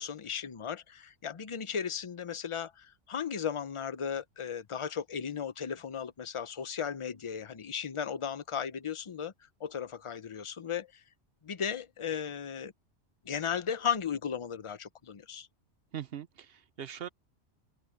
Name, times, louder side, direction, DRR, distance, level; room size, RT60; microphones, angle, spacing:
voice 1, 0.0-9.3 9.6-11.0 11.4-12.7 13.2-15.5, left 7 dB, 35° left, 0.6 m, -36 dB
voice 2, 15.9-17.1, right 9 dB, 60° right, 1.0 m, -41 dB
open air
omnidirectional pair, 1.2 m